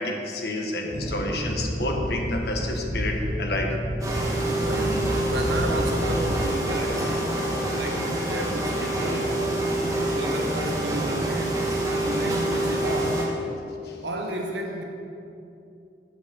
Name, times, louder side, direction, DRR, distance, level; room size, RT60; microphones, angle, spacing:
voice 1, 0.0-3.8 13.8-14.0, left 2 dB, 60° left, 1 dB, 1.2 m, -29 dB
sound 1, 0.9-6.4, equal, 10° left, 1.7 m, -30 dB
sound 2, 4.0-13.3, right 1 dB, 20° right, 1.3 m, -26 dB
voice 2, 4.6-7.5 7.7-9.6 10.1-11.7 12.0-13.3 14.0-14.8, right 1 dB, 85° right, 2 dB, 1.2 m, -32 dB
7.5 x 5.9 x 6.7 m, 2.7 s
head